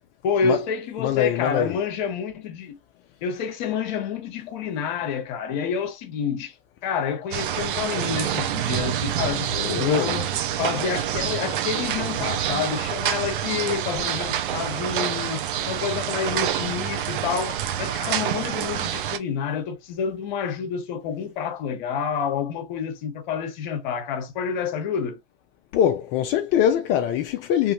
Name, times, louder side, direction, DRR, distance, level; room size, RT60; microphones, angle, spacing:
voice 1, 0.2-2.8 3.2-6.5 6.8-10.3 10.6-25.2, left 6 dB, 50° left, 1.0 m, -28 dB
voice 2, 1.0-1.8 9.5-10.1 25.7-27.7, left 9 dB, 35° left, 0.4 m, -23 dB
sound 1, 7.3-19.2, right 10 dB, 60° right, 0.6 m, -27 dB
3.6 x 2.6 x 2.8 m
hypercardioid pair, 110°, 29 cm